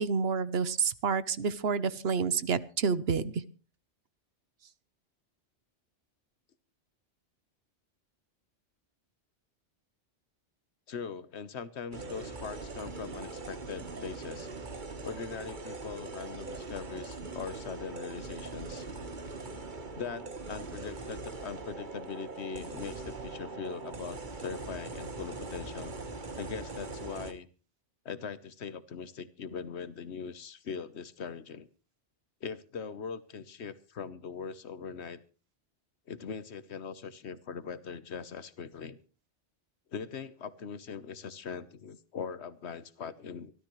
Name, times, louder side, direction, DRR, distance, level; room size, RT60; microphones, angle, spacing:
voice 1, 0.0-3.4, right 5 dB, 60° right, 16 dB, 1.1 m, -29 dB
voice 2, 10.9-14.5 15.0-18.8 19.9-25.9 26.4-27.5 28.0-31.7 32.4-35.2 36.1-39.0 39.9-43.5, left 6 dB, 65° left, 14 dB, 1.3 m, -41 dB
sound 1, 11.9-27.3, right 3 dB, 45° right, 1.4 m, -41 dB
25.0 x 12.5 x 3.1 m, 0.35 s
omnidirectional pair, 1.2 m